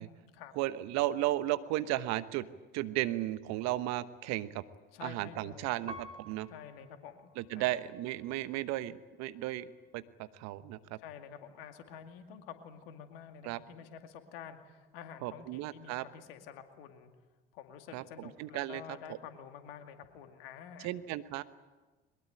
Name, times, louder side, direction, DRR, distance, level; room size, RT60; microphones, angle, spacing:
voice 1, 0.0-0.5 4.9-5.8 6.5-7.7 11.0-17.1 17.5-20.9, left 8 dB, 75° left, 6 dB, 2.4 m, -49 dB
voice 2, 0.6-2.5 2.7-4.6 5.0-6.5 7.4-11.0 13.4-13.6 15.2-16.0 17.9-18.8 19.1-19.2 20.8-21.4, right 15 dB, 65° right, 13 dB, 1.2 m, -35 dB
Piano, 5.9-8.6 9.2-10.0, equal, 20° right, 2.4 m, -51 dB
22.5 x 21.0 x 9.1 m, 1.2 s
hypercardioid pair, 60°, 29 cm